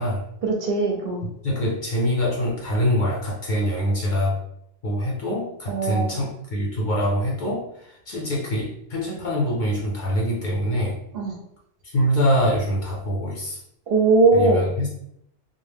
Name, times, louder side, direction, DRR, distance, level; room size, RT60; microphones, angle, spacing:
voice 1, 0.4-1.2 5.7-6.2 11.1-11.3 13.9-14.6, right 3 dB, 65° right, 0 dB, 0.7 m, -20 dB
voice 2, 1.2-4.4 4.8-11.0 11.9-13.6 14.3-14.9, equal, 55° left, -4 dB, 0.6 m, -24 dB
2.0 x 2.0 x 3.3 m, 0.74 s
omnidirectional pair, 1.2 m